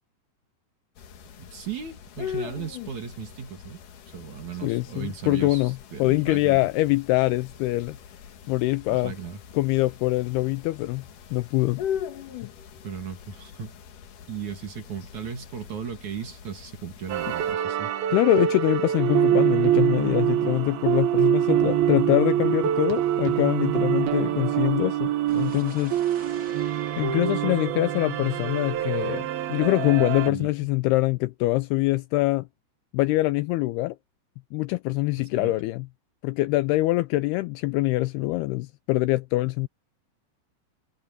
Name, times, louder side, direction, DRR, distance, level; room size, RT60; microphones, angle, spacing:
sound 1, 1.0-17.6, left 9 dB, 55° left, 2.9 m, -40 dB
voice 1, 1.4-3.8 4.1-6.6 8.9-9.4 12.8-13.8 14.3-17.9 21.9-22.0 22.3-22.5 30.3-30.5 35.2-35.5, right 7 dB, 50° right, 3.4 m, -37 dB
voice 2, 4.6-8.0 8.5-9.1 9.5-11.0 11.3-11.8 18.1-26.0 27.0-32.5 32.9-34.0 34.5-35.9 36.2-39.7, left 19 dB, 80° left, 2.4 m, -24 dB
sound 2, 17.1-30.3, right 11 dB, 70° right, 2.9 m, -25 dB
sound 3, 25.3-29.2, right 3 dB, 25° right, 3.3 m, -46 dB
omnidirectional pair, 4.9 m